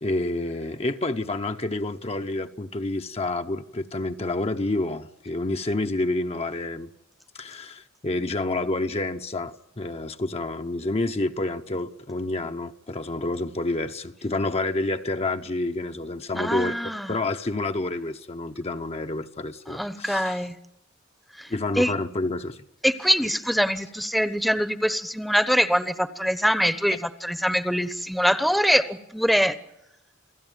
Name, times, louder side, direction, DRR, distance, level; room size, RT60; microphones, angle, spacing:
voice 1, 0.0-6.9 7.3-16.8 17.1-20.5 21.5-22.6, left 2 dB, 30° left, 0.9 m, -29 dB
voice 2, 16.3-17.1 19.7-20.6 21.4-21.5 21.8-21.9 22.8-29.6, equal, ahead, 1.0 m, -23 dB
28.5 x 17.0 x 9.1 m
head